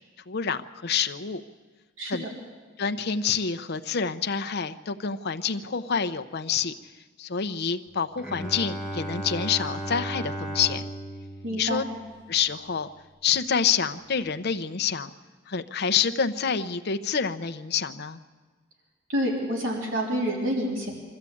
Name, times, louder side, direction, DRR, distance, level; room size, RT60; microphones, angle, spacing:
voice 1, 0.3-1.4 2.1-2.2 2.8-6.7 7.2-10.8 11.5-11.8 12.3-12.9 13.2-15.1 15.5-18.2, left 6 dB, 55° left, 10 dB, 0.8 m, -27 dB
voice 2, 2.0-2.3 11.4-11.8 19.1-20.9, equal, 85° right, -1 dB, 3.5 m, -28 dB
Bowed string instrument, 8.2-12.7, right 1 dB, 5° right, 1.5 m, -35 dB
24.0 x 14.0 x 8.5 m, 1.4 s
head